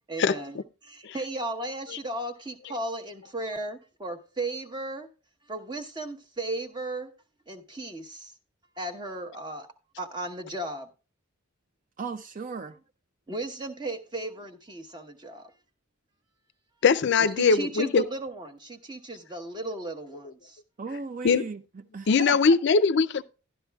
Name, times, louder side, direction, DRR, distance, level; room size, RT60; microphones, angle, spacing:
voice 1, 0.1-5.1 5.5-7.1 7.5-8.3 8.8-9.7 10.0-10.9 13.3-15.5 17.4-20.6, right 2 dB, 20° right, 1.0 m, -35 dB
voice 2, 12.0-12.7 20.8-21.6 21.9-22.6, right 4 dB, 40° right, 0.5 m, -36 dB
voice 3, 16.8-18.0 21.2-21.5 22.1-23.2, left 5 dB, 55° left, 0.4 m, -21 dB
12.0 x 11.5 x 2.3 m
head